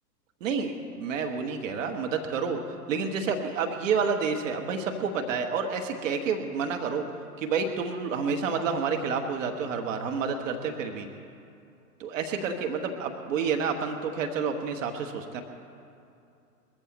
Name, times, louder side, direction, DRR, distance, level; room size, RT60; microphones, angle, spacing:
voice 1, 0.4-2.6 2.9-7.0 7.4-11.1 12.0-15.4, right 5 dB, 50° right, 4 dB, 1.5 m, -29 dB
21.5 x 14.0 x 4.3 m, 2.6 s
figure-of-eight pair, 115°, 48 cm